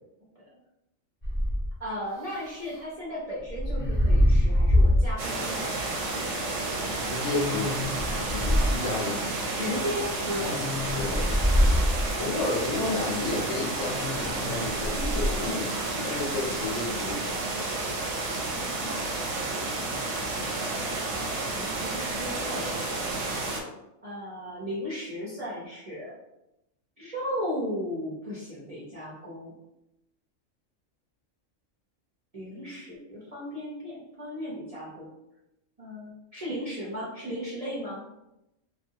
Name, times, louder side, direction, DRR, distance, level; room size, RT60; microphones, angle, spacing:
sound 1, 1.2-1.7 3.5-5.1 5.8-5.9 7.2-8.8 10.2-12.1 13.9-15.4, equal, 20° left, 0.7 m, -24 dB
voice 1, 1.8-6.3 9.6-10.6 21.3-23.2 24.0-26.1 27.0-29.5 32.3-35.1 35.8-38.0, equal, 40° right, -7 dB, 0.6 m, -36 dB
sound 2, 5.2-23.6, right 2 dB, 65° right, 0.9 m, -31 dB
voice 2, 7.0-7.8 8.3-9.2 10.9-11.3 12.2-17.2, left 3 dB, 70° left, 0 dB, 0.9 m, -31 dB
2.7 x 2.3 x 2.7 m, 0.89 s
omnidirectional pair, 1.4 m